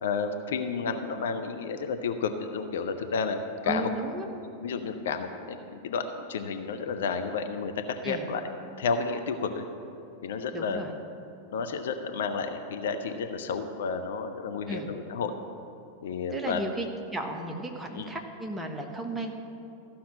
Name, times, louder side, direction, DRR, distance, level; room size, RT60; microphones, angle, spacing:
voice 1, 0.0-3.9 4.6-7.7 8.0-8.5 8.8-9.6 10.2-10.8 11.5-15.3 16.0-16.6 17.9-18.1, left 5 dB, 60° left, 7 dB, 0.7 m, -31 dB
voice 2, 3.7-4.3 8.0-8.2 10.5-10.9 14.7-14.9 16.3-16.9 17.1-19.3, right 1 dB, 10° right, 2 dB, 1.2 m, -34 dB
14.0 x 5.8 x 7.5 m, 2.7 s
figure-of-eight pair, 90°, 0 cm